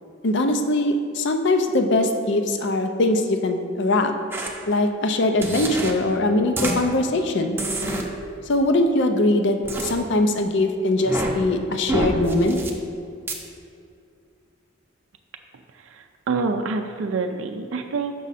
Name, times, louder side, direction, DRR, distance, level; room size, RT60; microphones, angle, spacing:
voice 1, 0.2-4.1 4.7-7.6 8.5-12.6, left 2 dB, 60° left, 6 dB, 0.5 m, -21 dB
sound 1, 4.3-4.5 5.4-5.9 6.6-6.8 7.6-8.0 9.6-9.9 11.0-11.3 11.9-12.7 13.3-13.4, right 1 dB, 10° right, 0.6 m, -26 dB
voice 2, 15.7-18.1, right 4 dB, 70° right, 5 dB, 0.4 m, -27 dB
6.9 x 6.2 x 4.1 m, 2.4 s
head